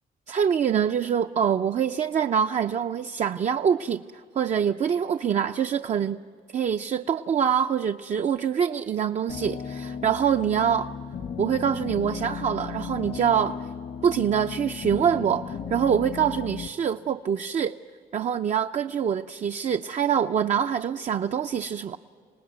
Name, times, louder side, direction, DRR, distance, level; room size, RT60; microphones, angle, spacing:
voice 1, 0.3-4.0 4.4-6.2 6.5-10.9 11.4-13.7 14.0-17.8 18.1-22.0, right 8 dB, 50° right, 0.5 m, -25 dB
sound 1, 9.3-16.7, left 6 dB, 70° left, 1.2 m, -35 dB
27.0 x 19.0 x 9.4 m
cardioid pair, 75°, 15 cm